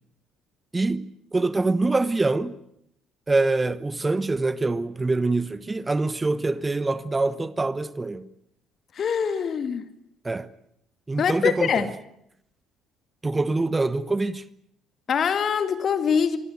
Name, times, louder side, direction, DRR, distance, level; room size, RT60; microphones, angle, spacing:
voice 1, 0.7-2.5 3.3-8.3 10.2-10.5 11.1-11.9 13.2-14.4, right 3 dB, 20° right, 1.1 m, -25 dB
voice 2, 9.0-9.8 11.2-11.9 15.1-16.4, left 7 dB, 45° left, 2.2 m, -23 dB
25.0 x 21.0 x 9.4 m
figure-of-eight pair, 50°, 0 cm